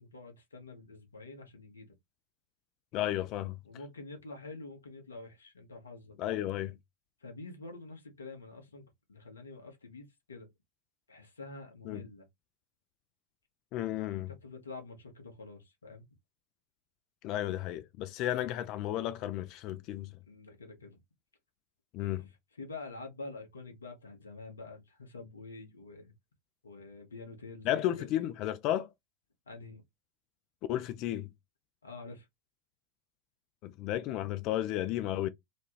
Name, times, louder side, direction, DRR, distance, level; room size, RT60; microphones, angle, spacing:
voice 1, 0.0-1.9 3.6-6.2 7.2-10.5 11.1-12.3 14.1-16.0 20.3-21.0 22.2-26.1 26.6-28.1 29.5-29.8 31.8-32.3, left 3 dB, 70° left, 1.0 m, -47 dB
voice 2, 2.9-3.6 6.2-6.8 11.9-12.0 13.7-14.3 17.2-20.1 21.9-22.3 27.7-28.9 30.7-31.3 33.6-35.3, left 13 dB, 40° left, 0.3 m, -33 dB
3.1 x 2.3 x 2.9 m
figure-of-eight pair, 90°, 0 cm